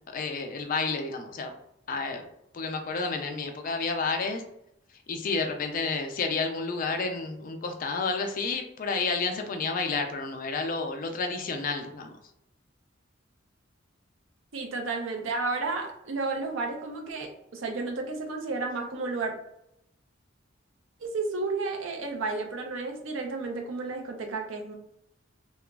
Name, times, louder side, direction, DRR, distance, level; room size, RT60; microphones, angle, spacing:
voice 1, 0.1-1.5 1.9-2.2 2.5-4.4 5.1-12.1, left 4 dB, 45° left, 5 dB, 0.4 m, -30 dB
voice 2, 14.5-19.4 21.0-24.7, right 3 dB, 90° right, 2 dB, 0.5 m, -32 dB
2.9 x 2.4 x 2.3 m, 0.80 s
head